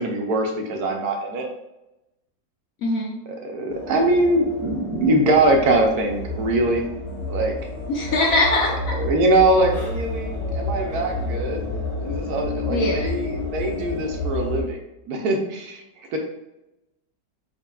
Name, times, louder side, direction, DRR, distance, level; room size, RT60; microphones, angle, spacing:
voice 1, 0.0-1.5 3.4-6.8 7.3-7.5 8.1-8.2 9.0-11.6 12.0-14.8 15.1-15.8 16.1-16.2, right 2 dB, 70° right, 2 dB, 1.0 m, -22 dB
voice 2, 2.8-3.2 7.9-8.9 12.7-13.1, left 2 dB, 70° left, -1 dB, 0.8 m, -22 dB
sound 1, 3.7-14.6, left 2 dB, 35° left, 0.6 m, -30 dB
5.0 x 2.7 x 2.3 m, 0.92 s
omnidirectional pair, 1.8 m